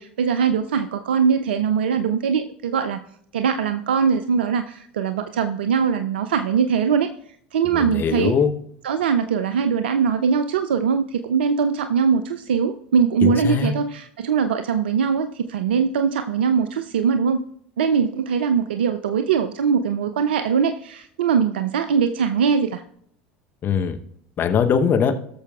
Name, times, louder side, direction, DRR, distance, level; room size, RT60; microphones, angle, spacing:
voice 1, 0.0-3.0 3.3-7.1 7.5-8.3 8.8-17.4 17.8-22.8, right 6 dB, 75° right, 9 dB, 0.4 m, -21 dB
voice 2, 7.7-8.5 13.2-13.7 23.6-24.0 24.4-25.1, left 7 dB, 35° left, 7 dB, 0.9 m, -21 dB
18.0 x 6.7 x 2.4 m, 0.68 s
figure-of-eight pair, 75°, 6 cm